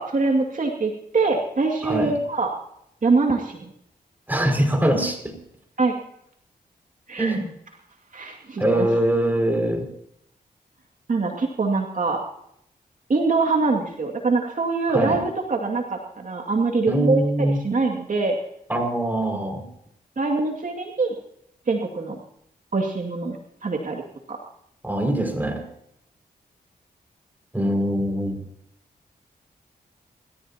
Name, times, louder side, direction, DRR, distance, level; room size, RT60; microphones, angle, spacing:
voice 1, 0.0-2.5 3.0-3.7 5.8-6.0 7.1-7.4 8.1-8.9 11.1-12.2 13.1-18.4 20.2-21.2 21.7-22.2 22.7-24.0 24.3-24.4, right 3 dB, 50° right, 1 dB, 2.3 m, -24 dB
voice 2, 1.8-2.2 4.3-5.4 7.2-7.5 8.6-9.9 14.9-15.2 16.9-17.6 18.7-19.7 24.8-25.6 27.5-28.4, right 1 dB, 10° right, 3 dB, 5.7 m, -23 dB
27.5 x 14.5 x 2.9 m, 0.76 s
cardioid pair, 70°, 16 cm